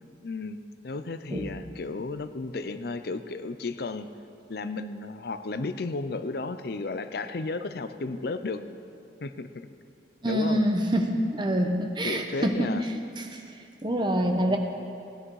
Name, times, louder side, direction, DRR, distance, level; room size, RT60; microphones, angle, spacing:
voice 1, 0.2-4.1 4.5-8.6 9.2-9.7 10.3-10.7 12.0-12.8 14.5-14.6, left 3 dB, 60° left, 11 dB, 0.6 m, -33 dB
voice 2, 10.2-12.7 13.2-13.4 13.8-14.6, equal, 25° right, 4 dB, 1.0 m, -26 dB
17.0 x 10.0 x 4.8 m, 2.5 s
head